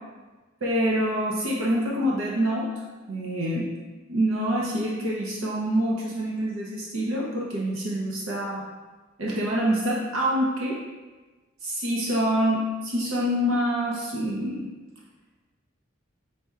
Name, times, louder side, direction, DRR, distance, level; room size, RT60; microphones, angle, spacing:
voice 1, 0.6-2.7 3.1-3.7 4.1-8.6 9.2-10.8 11.6-14.7, equal, 80° right, -4 dB, 0.7 m, -26 dB
4.2 x 4.2 x 2.4 m, 1.3 s
head